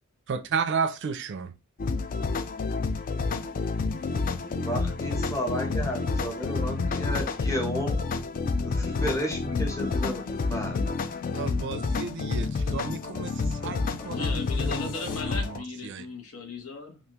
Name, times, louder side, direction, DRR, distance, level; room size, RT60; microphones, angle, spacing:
voice 1, 0.3-1.5 11.3-14.9 15.3-16.1, right 5 dB, 55° right, 0.4 m, -33 dB
sound 1, 1.8-15.6, left 4 dB, 40° left, 0.3 m, -29 dB
voice 2, 4.6-8.0 8.6-10.8 14.0-14.1, equal, 15° left, 0.8 m, -33 dB
voice 3, 14.0-17.0, left 3 dB, 80° left, 1.0 m, -37 dB
3.4 x 2.4 x 2.8 m
head